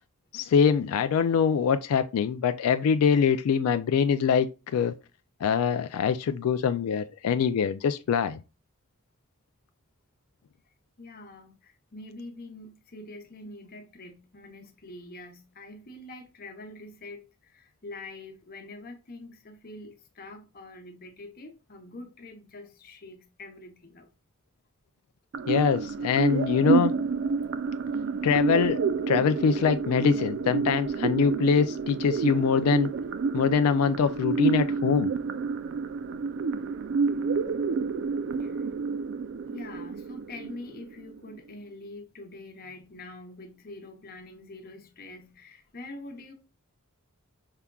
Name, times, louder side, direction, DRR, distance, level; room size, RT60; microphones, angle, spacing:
voice 1, 0.3-4.9 5.4-8.4 25.5-26.9 28.2-28.8 29.1-32.9 33.3-35.1, left 6 dB, 85° left, 0.3 m, -24 dB
voice 2, 11.0-24.1 38.4-38.6 39.5-46.3, left 2 dB, 45° left, 0.9 m, -45 dB
sound 1, 25.3-41.3, right 5 dB, 55° right, 0.3 m, -29 dB
5.7 x 3.5 x 2.3 m
head